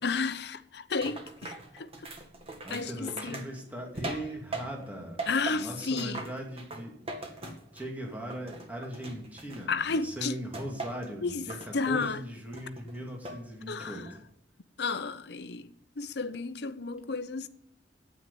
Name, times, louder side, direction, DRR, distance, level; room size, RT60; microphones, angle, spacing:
voice 1, 0.0-1.9 2.7-3.5 5.3-6.2 9.7-10.4 11.2-12.2 13.7-14.1 14.8-17.5, left 4 dB, 65° left, 0.8 m, -32 dB
sound 1, 1.0-4.9 5.2-8.0 8.3-9.9 10.5-11.1 11.5-12.1 12.5-13.4 13.8-14.2, right 2 dB, 35° right, 2.0 m, -41 dB
voice 2, 2.6-5.2 5.5-6.9 7.7-14.2, right 1 dB, 10° right, 2.5 m, -39 dB
9.4 x 9.0 x 9.8 m
head